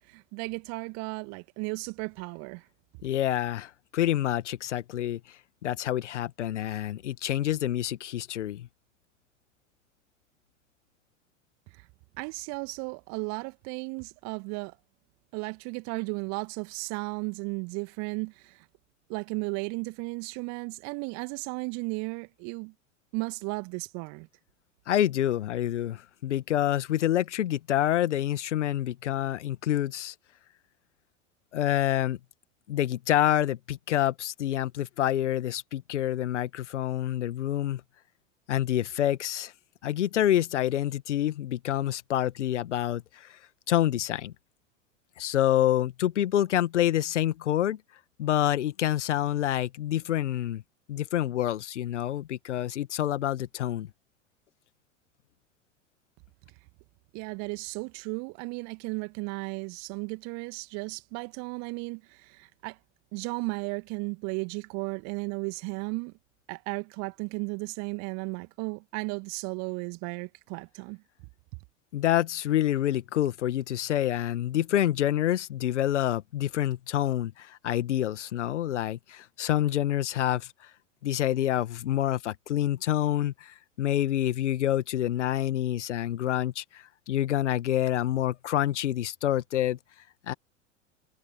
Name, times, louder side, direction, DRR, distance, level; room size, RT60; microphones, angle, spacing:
voice 1, 0.1-2.7 11.7-11.9 12.2-14.8 15.3-18.7 19.1-22.7 23.1-24.3 57.1-62.8 63.1-66.1 66.5-71.0, right 31 dB, 45° right, 2.2 m, -35 dB
voice 2, 3.0-5.2 5.6-8.7 24.9-30.1 31.5-32.2 32.7-37.8 38.5-39.5 39.8-43.3 43.7-44.3 45.2-47.8 48.2-50.6 50.9-53.9 71.9-80.5 81.0-89.8 90.3-90.4, left 12 dB, 65° left, 1.9 m, -27 dB
figure-of-eight pair, 85°, 38 cm